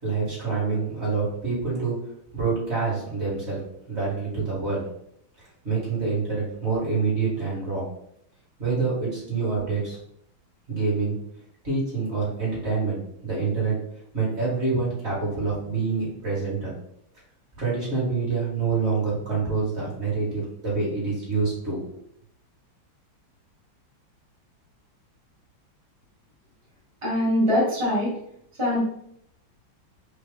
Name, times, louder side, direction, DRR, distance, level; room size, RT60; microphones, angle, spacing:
voice 1, 0.0-2.0 2.3-3.6 3.9-4.8 5.6-7.9 8.6-10.0 10.7-11.2 11.6-13.0 13.2-13.8 14.1-16.7 17.6-21.8, right 4 dB, 35° right, -6 dB, 2.0 m, -26 dB
voice 2, 27.0-28.2 28.6-28.8, left 1 dB, 20° right, -7 dB, 1.0 m, -22 dB
4.5 x 3.0 x 3.4 m, 0.71 s
omnidirectional pair, 2.2 m